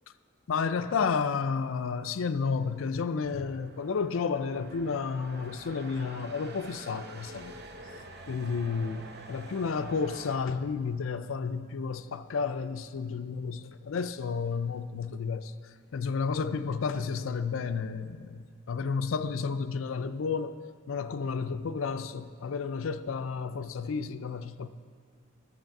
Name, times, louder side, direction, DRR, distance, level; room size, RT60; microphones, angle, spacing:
voice 1, 0.5-7.5 8.3-15.5 15.9-20.6 20.9-24.7, left 5 dB, 80° left, 0.4 m, -31 dB
sound 1, 2.4-10.4, right 2 dB, 55° right, 0.9 m, -47 dB
10.5 x 7.2 x 5.9 m
head